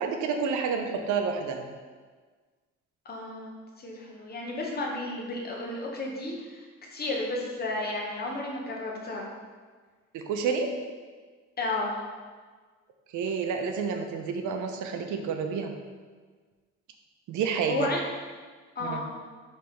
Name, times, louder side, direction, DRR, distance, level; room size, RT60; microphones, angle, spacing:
voice 1, 0.0-1.7 10.1-10.7 13.1-15.7 17.3-17.9 18.8-19.0, right 6 dB, 75° right, 5 dB, 0.6 m, -29 dB
voice 2, 3.0-9.3 11.6-12.0 17.7-18.0 18.8-19.1, left 2 dB, 30° left, -1 dB, 0.9 m, -33 dB
4.4 x 3.3 x 3.1 m, 1.5 s
cardioid pair, 90°, 30 cm